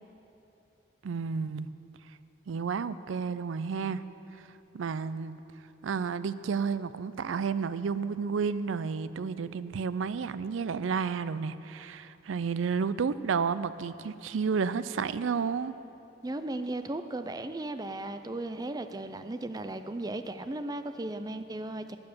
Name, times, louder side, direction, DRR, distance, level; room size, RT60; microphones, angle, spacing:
voice 1, 1.0-1.7 2.5-4.0 4.7-5.4 5.8-15.7, right 5 dB, 90° right, 15 dB, 0.4 m, -31 dB
voice 2, 16.2-22.0, right 2 dB, 20° right, 9 dB, 0.4 m, -36 dB
12.0 x 9.1 x 6.8 m, 3.0 s
head